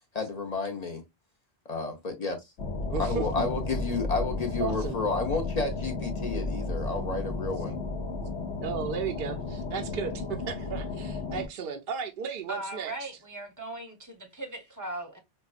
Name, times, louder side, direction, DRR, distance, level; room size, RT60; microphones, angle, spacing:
voice 1, 0.1-1.0 1.7-2.4 3.0-7.8, left 4 dB, 45° left, 0.6 m, -31 dB
sound 1, 2.6-11.5, left 3 dB, 75° left, 1.0 m, -33 dB
voice 2, 2.9-3.5 4.6-4.9 8.6-12.9, right 6 dB, 60° right, 0.6 m, -34 dB
voice 3, 12.5-15.2, right 1 dB, 20° right, 0.7 m, -38 dB
5.2 x 2.2 x 2.3 m
omnidirectional pair, 1.2 m